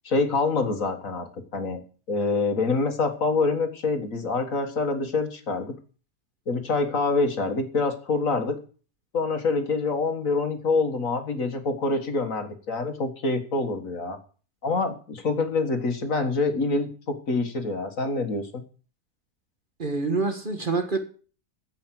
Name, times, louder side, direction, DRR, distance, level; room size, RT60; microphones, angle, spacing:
voice 1, 0.1-1.8 2.1-5.7 6.5-8.6 9.1-14.2 14.6-18.6, left 3 dB, 55° left, 2.0 m, -26 dB
voice 2, 19.8-21.0, right 3 dB, 35° right, 1.6 m, -26 dB
15.0 x 5.9 x 7.6 m
omnidirectional pair, 1.7 m